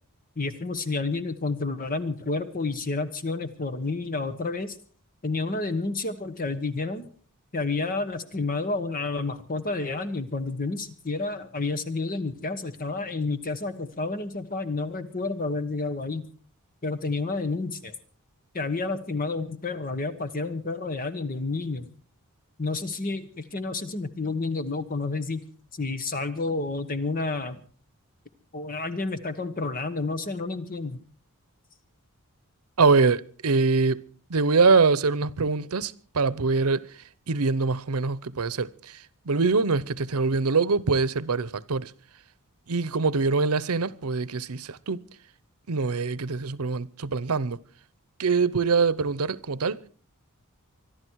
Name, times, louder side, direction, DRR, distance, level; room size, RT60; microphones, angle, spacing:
voice 1, 0.4-4.8 5.2-7.1 7.5-16.2 16.8-17.9 18.5-21.9 22.6-25.5 25.7-27.6 28.5-31.0, left 3 dB, 40° left, 1.2 m, -30 dB
voice 2, 32.8-34.0 34.3-41.9 42.7-45.0 45.7-47.6 48.2-49.8, right 4 dB, 80° right, 0.8 m, -24 dB
25.0 x 11.5 x 4.6 m
head